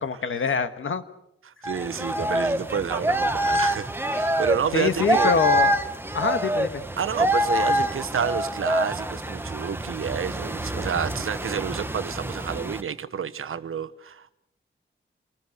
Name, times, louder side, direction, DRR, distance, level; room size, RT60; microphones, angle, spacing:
voice 1, 0.0-1.0 4.7-5.7 6.1-6.8, left 5 dB, 75° left, 1.6 m, -24 dB
voice 2, 1.4-5.3 7.0-14.3, right 7 dB, 85° right, 1.1 m, -29 dB
sound 1, 1.6-12.8, equal, 10° right, 1.2 m, -26 dB
28.0 x 20.0 x 6.6 m
wide cardioid pair, 140°, 21 cm